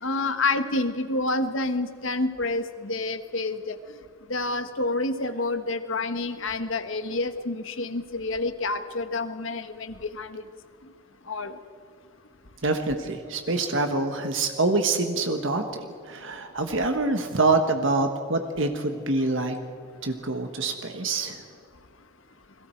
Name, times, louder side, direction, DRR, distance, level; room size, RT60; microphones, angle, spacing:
voice 1, 0.0-3.8 4.3-10.4 11.3-11.5, left 2 dB, 65° left, 9 dB, 1.4 m, -28 dB
voice 2, 12.6-19.6 20.0-21.4, right 3 dB, 60° right, 6 dB, 1.4 m, -26 dB
30.0 x 21.5 x 4.6 m, 2.3 s
head